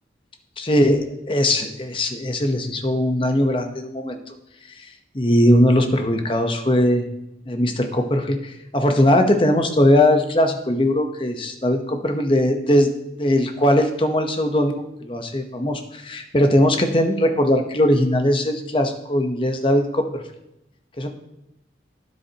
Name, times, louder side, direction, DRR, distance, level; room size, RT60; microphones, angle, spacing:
voice 1, 0.6-4.2 5.1-7.0 7.5-12.9 13.2-20.2 21.0-21.1, left 1 dB, 30° left, 5 dB, 0.9 m, -20 dB
12.5 x 9.7 x 2.9 m, 0.85 s
head